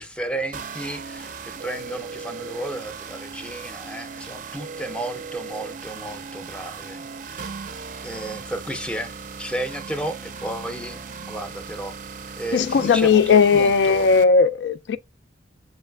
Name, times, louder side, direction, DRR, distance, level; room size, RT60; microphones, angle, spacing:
voice 1, 0.0-7.5 8.0-12.0 12.4-14.1, right 1 dB, 5° left, 0.5 m, -33 dB
sound 1, 0.5-14.2, right 5 dB, 45° right, 0.4 m, -37 dB
voice 2, 12.5-15.0, left 5 dB, 65° left, 0.3 m, -17 dB
7.2 x 3.2 x 2.3 m
head